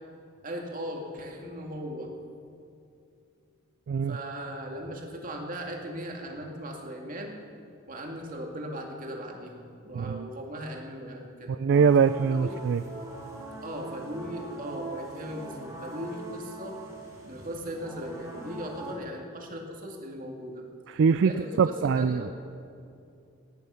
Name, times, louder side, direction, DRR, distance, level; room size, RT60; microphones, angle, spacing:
voice 1, 0.4-2.1 4.1-7.3 7.9-11.6 12.4-12.6 13.6-16.8 17.2-20.6 21.2-22.3, equal, 40° right, 1 dB, 2.2 m, -38 dB
voice 2, 3.9-4.2 9.9-10.3 11.5-12.8 20.9-21.3 21.6-22.3, right 6 dB, 55° right, 13 dB, 0.3 m, -23 dB
sound 1, 11.7-18.9, right 2 dB, 15° right, 3.3 m, -42 dB
17.5 x 11.0 x 5.7 m, 2.6 s
head